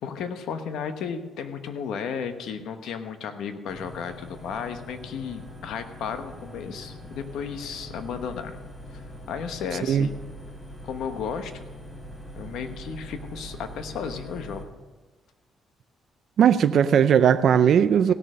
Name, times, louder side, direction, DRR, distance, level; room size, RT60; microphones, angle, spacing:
voice 1, 0.0-8.6 8.9-10.1 10.8-11.7 12.3-14.7 18.1-18.2, left 6 dB, 80° left, 8 dB, 1.1 m, -34 dB
sound 1, 3.7-14.6, equal, 20° left, 4.6 m, -42 dB
voice 2, 16.4-18.1, right 8 dB, 65° right, 11 dB, 0.4 m, -18 dB
16.5 x 6.7 x 6.3 m, 1.3 s
cardioid pair, 90°, 0 cm